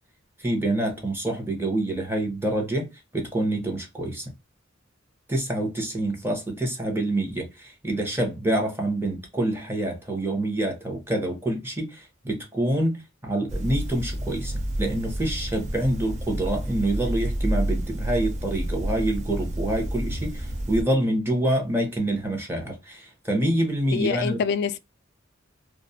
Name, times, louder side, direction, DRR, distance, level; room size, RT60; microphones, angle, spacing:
voice 1, 0.4-2.9 3.1-4.3 5.3-14.5 14.8-24.4, right 1 dB, 10° right, 0.8 m, -26 dB
sound 1, 13.5-20.8, right 1 dB, 35° right, 0.4 m, -29 dB
voice 2, 23.9-24.8, left 6 dB, 55° left, 0.3 m, -25 dB
2.3 x 2.1 x 2.6 m
head